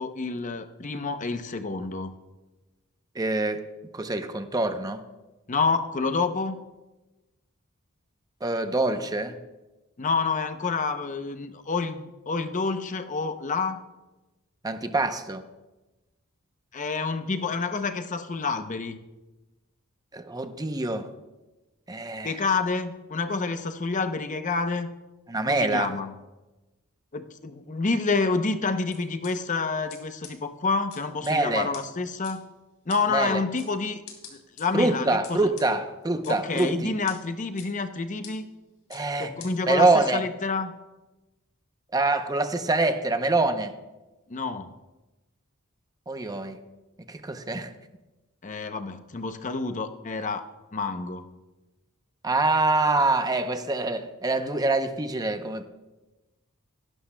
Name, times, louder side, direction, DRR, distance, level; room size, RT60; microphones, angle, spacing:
voice 1, 0.0-2.2 5.5-6.6 10.0-13.8 16.7-19.0 22.2-24.9 25.4-26.1 27.1-32.5 32.9-34.0 34.3-35.5 36.3-38.5 39.2-40.8 44.3-44.7 48.4-50.4 50.7-51.2, left 4 dB, 35° left, 0.6 m, -28 dB
voice 2, 3.2-3.6 3.9-5.0 8.4-9.4 14.6-15.4 20.1-21.1 21.9-22.4 25.3-25.9 31.2-31.7 33.1-33.4 34.7-36.9 38.9-39.3 39.7-40.2 41.9-43.7 46.1-46.6 47.1-47.7 52.2-55.7, right 2 dB, 15° right, 0.6 m, -25 dB
sound 1, 28.9-29.3 29.9-30.0 30.2-30.3 30.9-31.3 31.7-31.8 32.2-32.3 32.9-33.0 33.6-33.7 34.1-34.6 35.2-35.7 36.2-36.7 37.1-37.2 37.6-37.7 38.2-38.3 38.9-39.0 39.4-39.5, left 8 dB, 65° left, 2.8 m, -43 dB
17.5 x 11.5 x 2.2 m
head